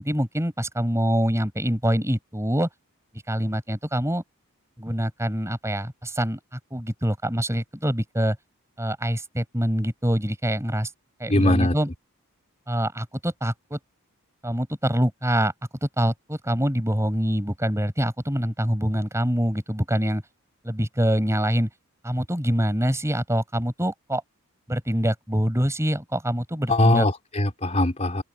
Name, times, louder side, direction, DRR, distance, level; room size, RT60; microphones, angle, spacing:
voice 1, 0.0-2.7 3.3-4.2 4.8-8.4 8.8-10.9 11.2-11.9 12.7-13.8 14.4-15.5 15.8-20.2 20.6-21.7 22.0-24.2 24.7-27.1, equal, 15° right, 5.9 m, -25 dB
voice 2, 11.3-11.7 26.7-28.2, left 1 dB, 30° left, 4.0 m, -21 dB
open air
head